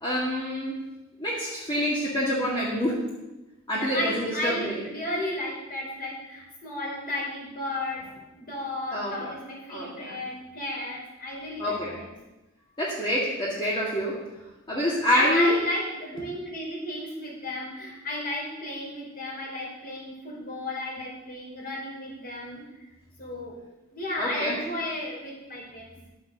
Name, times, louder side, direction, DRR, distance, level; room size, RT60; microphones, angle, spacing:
voice 1, 0.0-0.8 1.2-3.0 3.7-4.8 8.9-9.3 9.7-10.2 11.6-12.0 12.8-14.2 14.7-15.5 24.2-24.6, equal, 25° left, -6 dB, 2.1 m, -27 dB
voice 2, 3.7-12.1 15.1-22.6 23.2-23.6 23.9-25.8, left 1 dB, 45° left, -3 dB, 4.9 m, -33 dB
11.5 x 7.8 x 6.7 m, 1.0 s
head